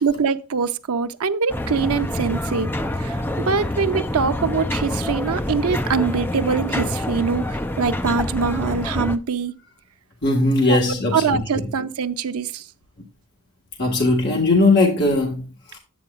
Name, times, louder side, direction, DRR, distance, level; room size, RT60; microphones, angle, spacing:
voice 1, 0.0-2.7 3.0-9.5 10.7-12.7, right 5 dB, 90° right, 0.6 m, -23 dB
sound 1, 1.5-9.2, left 1 dB, 10° left, 0.4 m, -26 dB
voice 2, 10.2-11.7 13.8-15.8, left 2 dB, 50° left, 1.7 m, -19 dB
10.5 x 8.8 x 2.4 m
head